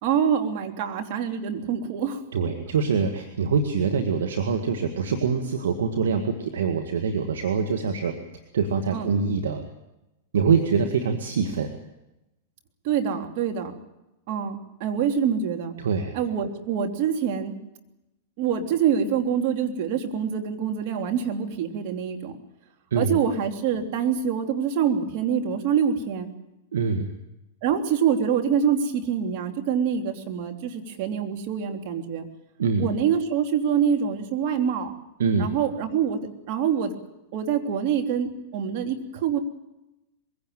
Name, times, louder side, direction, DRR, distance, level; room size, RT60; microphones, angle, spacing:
voice 1, 0.0-2.2 8.9-9.1 12.8-13.7 14.3-15.7 16.1-17.6 18.4-22.3 23.0-26.3 27.6-32.3 32.8-34.9 35.4-36.9 37.3-39.4, right 8 dB, 55° right, 4 dB, 3.1 m, -25 dB
voice 2, 2.3-8.2 8.5-9.6 10.3-11.7 15.8-16.1 22.9-23.2 26.7-27.1 32.6-32.9 35.2-35.5, right 5 dB, 75° right, 5 dB, 2.0 m, -24 dB
22.0 x 17.0 x 9.2 m, 0.95 s
hypercardioid pair, 110°, 0 cm